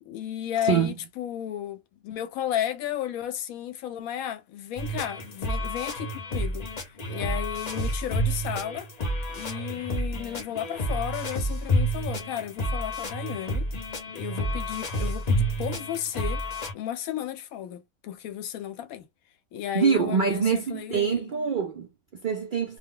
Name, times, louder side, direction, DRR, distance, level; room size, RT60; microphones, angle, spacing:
voice 1, 0.0-6.7 7.1-8.9 9.3-13.7 14.1-16.4 16.7-19.1 19.5-21.3, left 11 dB, 85° left, 1.0 m, -33 dB
voice 2, 0.6-0.9 19.7-22.8, right 6 dB, 70° right, 0.4 m, -25 dB
sound 1, 4.8-16.7, equal, 40° left, 0.7 m, -29 dB
2.3 x 2.0 x 3.6 m
omnidirectional pair, 1.4 m